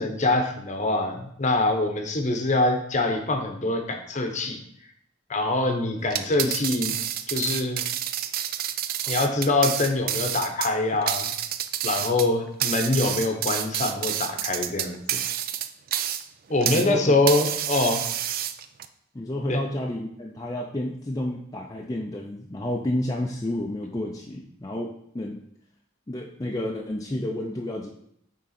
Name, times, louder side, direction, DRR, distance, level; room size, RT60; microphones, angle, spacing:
voice 1, 0.0-4.6 5.3-7.0 7.3-7.8 9.1-11.3 11.8-15.2 16.5-18.0 19.5-19.6, left 2 dB, 35° left, 4 dB, 0.9 m, -24 dB
sound 1, 6.0-16.9 17.3-18.9, right 11 dB, 45° right, 0.4 m, -29 dB
voice 2, 16.6-17.1 19.1-25.4 26.1-27.9, left 1 dB, 20° left, -1 dB, 0.5 m, -30 dB
8.6 x 3.7 x 4.2 m, 0.72 s
head